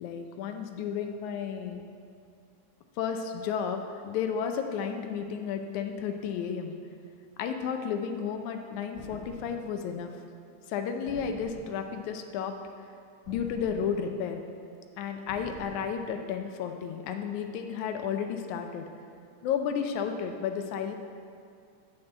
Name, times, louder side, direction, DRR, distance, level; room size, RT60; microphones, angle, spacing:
voice 1, 0.0-1.8 3.0-6.7 7.4-10.1 10.7-12.6 13.3-14.4 15.0-18.9 19.4-20.9, left 7 dB, 75° left, 6 dB, 2.0 m, -32 dB
sound 1, 8.9-9.8 11.1-12.0 13.3-14.3 15.3-16.1, right 3 dB, 50° right, 1.2 m, -47 dB
7.1 x 6.6 x 8.0 m, 2.3 s
omnidirectional pair, 3.6 m